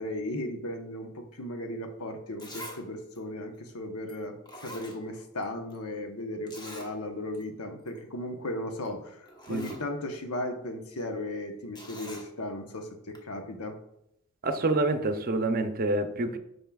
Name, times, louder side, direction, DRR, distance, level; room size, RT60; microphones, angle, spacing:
voice 1, 0.0-13.8, left 1 dB, 90° left, 5 dB, 1.0 m, -36 dB
Zipper (clothing), 2.4-2.8 3.1-3.2 4.1-4.2 4.5-5.4 5.7-5.8 6.5-6.9 7.3-7.4 7.8-8.0 8.9-9.0 9.3-9.8 11.7-12.3 13.1-13.2, equal, 20° left, 1.1 m, -44 dB
voice 2, 14.4-16.4, right 2 dB, 40° right, 8 dB, 0.6 m, -27 dB
9.0 x 5.5 x 2.4 m, 0.79 s
head